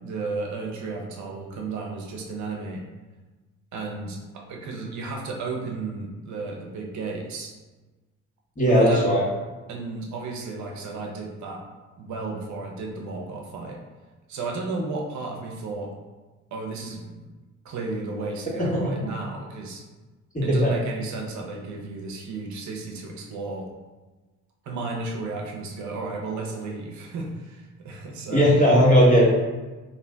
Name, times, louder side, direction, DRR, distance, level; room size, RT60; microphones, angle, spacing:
voice 1, 0.0-2.8 3.7-7.5 8.7-9.1 9.7-11.6 12.0-13.8 14.3-15.9 16.5-17.3 17.6-19.8 20.4-23.7 24.6-28.6, right 3 dB, 70° right, 0 dB, 0.6 m, -33 dB
voice 2, 8.6-9.2 18.6-19.1 20.3-20.7 28.3-29.2, equal, 25° left, -7 dB, 1.3 m, -18 dB
2.5 x 2.4 x 3.3 m, 1.2 s
cardioid pair, 90°, 30 cm